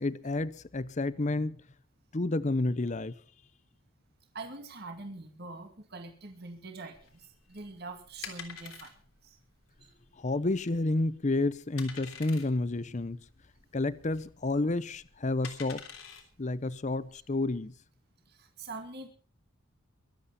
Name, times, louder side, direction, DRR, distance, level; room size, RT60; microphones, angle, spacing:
voice 1, 0.0-1.6 2.1-3.1 10.2-13.2 13.7-15.8 16.4-17.7, left 2 dB, 35° left, 0.6 m, -30 dB
voice 2, 4.3-9.0 9.2-9.4 9.8-9.9 18.3-19.1, right 3 dB, 50° right, 2.1 m, -44 dB
sound 1, 7.0-17.6, left 7 dB, 80° left, 3.3 m, -48 dB
23.0 x 8.5 x 5.7 m
head